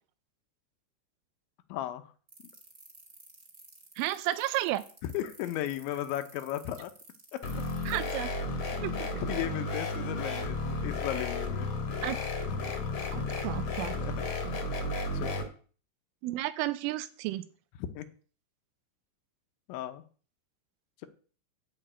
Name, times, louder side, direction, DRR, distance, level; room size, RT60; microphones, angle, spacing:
voice 1, 1.7-2.1 5.0-6.9 9.2-11.7 14.0-14.1 15.1-15.4 18.0-18.1 19.7-20.0, left 12 dB, 75° left, 9 dB, 3.0 m, -35 dB
sound 1, 2.3-8.1, right 3 dB, 20° right, 2.3 m, -53 dB
voice 2, 4.0-4.8 7.9-8.3 8.8-9.1 12.0-12.2 13.1-14.0 16.2-17.4, right 15 dB, 90° right, 14 dB, 3.3 m, -32 dB
sound 2, 7.4-15.4, left 2 dB, 50° left, 2.1 m, -33 dB
11.0 x 5.8 x 8.9 m, 0.41 s
omnidirectional pair, 5.6 m